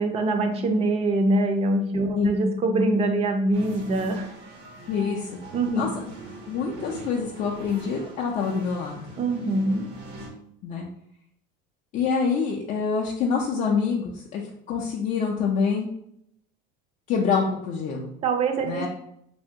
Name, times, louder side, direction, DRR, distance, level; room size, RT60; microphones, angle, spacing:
voice 1, 0.0-4.3 5.5-6.0 9.2-9.9 18.2-18.9, right 2 dB, 30° right, 5 dB, 0.4 m, -24 dB
sound 1, 3.5-10.3, right 1 dB, 90° right, 1.0 m, -42 dB
voice 2, 4.9-5.3 5.8-5.9 6.4-9.0 10.6-10.9 11.9-14.4 14.7-15.9 17.1-18.1 18.6-18.9, left 5 dB, 35° left, -2 dB, 0.4 m, -26 dB
3.3 x 2.2 x 2.7 m, 0.73 s
cardioid pair, 140°, 21 cm